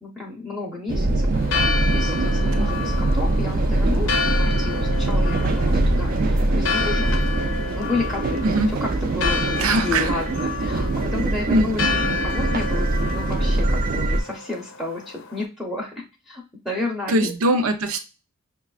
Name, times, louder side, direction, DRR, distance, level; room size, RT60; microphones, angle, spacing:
voice 1, 0.0-1.3 1.6-7.2 7.8-17.3, left 3 dB, ahead, -2 dB, 0.6 m, -31 dB
sound 1, 0.9-14.2, right 2 dB, 40° right, 0.3 m, -23 dB
Church bell, 1.3-15.4, left 5 dB, 60° left, 0.6 m, -30 dB
voice 2, 9.6-10.2 11.5-12.0 17.1-18.0, right 1 dB, 80° right, 7 dB, 0.6 m, -22 dB
5.8 x 2.3 x 2.3 m, 0.28 s
head